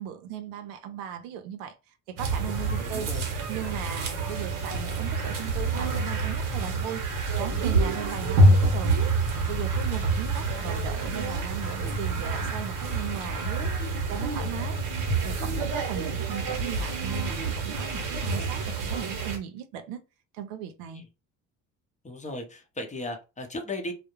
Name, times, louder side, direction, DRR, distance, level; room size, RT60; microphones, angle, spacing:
voice 1, 0.0-1.7 2.1-3.1 3.5-7.0 7.4-9.0 9.4-13.7 14.1-14.8 15.2-20.0 20.3-21.0, right 9 dB, 90° right, 0.5 m, -37 dB
sound 1, 2.2-19.4, right 2 dB, 55° right, 0.9 m, -27 dB
voice 2, 2.8-3.3 20.9-21.0 22.0-23.9, left 1 dB, 20° left, 0.7 m, -36 dB
2.3 x 2.1 x 2.9 m
supercardioid pair, 80°, 38 cm